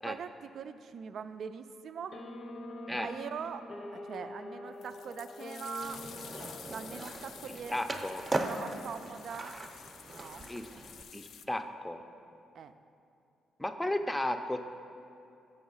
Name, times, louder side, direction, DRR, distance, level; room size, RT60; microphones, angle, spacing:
voice 1, 0.1-2.2 2.9-7.8 8.4-9.7 10.1-10.9 12.5-12.7, right 6 dB, 65° right, 9 dB, 0.4 m, -43 dB
sound 1, 2.1-7.6, left 2 dB, 50° left, 0.8 m, -45 dB
sound 2, 4.8-11.5, left 7 dB, 70° left, 0.3 m, -50 dB
Skateboard, 5.8-11.0, right 2 dB, 30° right, 0.7 m, -39 dB
voice 2, 7.7-8.3 10.5-10.7 11.1-12.0 13.6-14.6, left 1 dB, 10° left, 7 dB, 0.5 m, -34 dB
7.1 x 5.9 x 5.5 m, 2.7 s
supercardioid pair, 70°, 0 cm